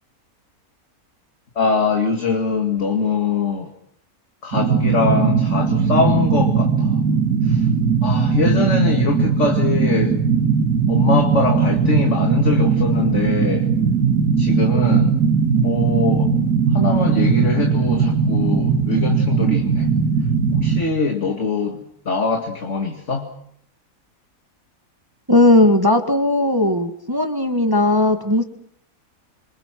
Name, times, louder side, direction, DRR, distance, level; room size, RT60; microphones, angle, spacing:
voice 1, 1.6-3.7 4.4-7.0 7.4-7.7 8.0-10.2 10.9-13.7 14.4-15.2 15.5-16.3 16.7-20.0 20.5-23.3, left 4 dB, 50° left, 3 dB, 2.6 m, -22 dB
sound 1, 4.5-20.8, right 6 dB, 90° right, 2.2 m, -19 dB
voice 2, 25.3-28.4, left 1 dB, 15° right, 6 dB, 1.8 m, -17 dB
29.0 x 26.0 x 6.1 m, 0.68 s
omnidirectional pair, 1.6 m